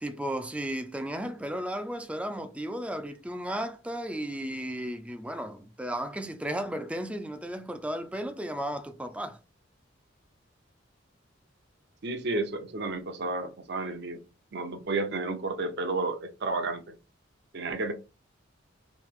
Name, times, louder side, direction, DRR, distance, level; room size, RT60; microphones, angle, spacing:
voice 1, 0.0-9.4, right 1 dB, 5° right, 0.4 m, -34 dB
voice 2, 12.0-14.2 14.5-16.8 17.5-17.9, right 3 dB, 60° right, 0.7 m, -31 dB
3.1 x 2.9 x 3.6 m
head